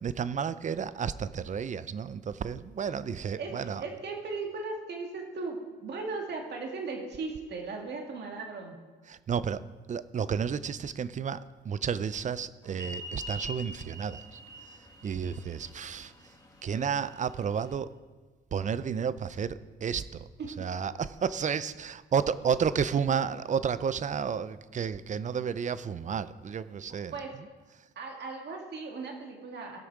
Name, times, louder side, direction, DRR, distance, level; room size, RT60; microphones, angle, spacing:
voice 1, 0.0-3.8 9.1-9.6 9.9-14.4 15.0-16.1 16.6-17.9 18.5-20.3 20.6-27.1, right 7 dB, 40° right, 15 dB, 0.5 m, -31 dB
voice 2, 3.4-8.7 20.4-20.5 27.1-27.4 28.0-29.8, right 3 dB, 60° right, 2 dB, 2.1 m, -37 dB
sound 1, 12.7-17.7, left 1 dB, 20° left, 2.1 m, -45 dB
17.0 x 6.3 x 4.7 m, 1.3 s
cardioid pair, 90°, 20 cm